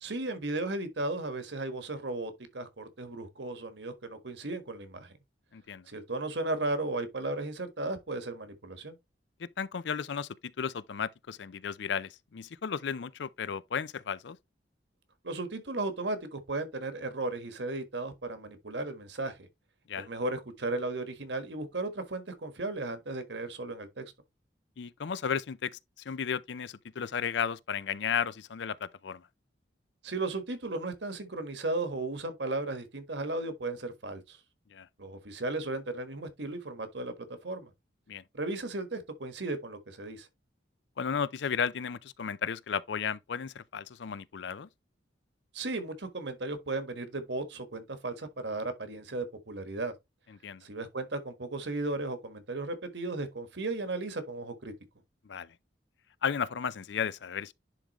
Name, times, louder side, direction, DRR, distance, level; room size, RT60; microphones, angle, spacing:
voice 1, 0.0-5.2 5.9-9.0 15.2-19.5 19.9-24.0 30.0-34.4 35.0-37.7 38.3-40.3 45.5-49.9 50.6-54.7, right 2 dB, 70° right, 1.4 m, -35 dB
voice 2, 5.5-5.9 9.4-10.3 10.6-14.4 19.9-20.1 24.8-25.8 26.1-29.2 34.7-34.9 38.1-38.2 41.0-44.7 50.4-50.6 55.3-55.5 56.2-57.5, left 7 dB, 70° left, 0.5 m, -34 dB
10.5 x 3.7 x 3.0 m
head